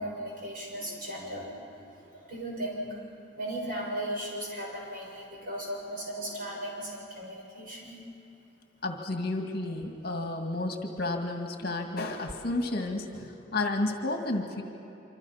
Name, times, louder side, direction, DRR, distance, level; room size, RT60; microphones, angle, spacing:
voice 1, 0.0-1.7 2.1-3.0 3.4-8.0, right 1 dB, 45° right, -2 dB, 6.7 m, -36 dB
voice 2, 8.8-14.6, left 2 dB, 50° left, 3 dB, 2.0 m, -31 dB
26.5 x 26.0 x 5.8 m, 2.9 s
head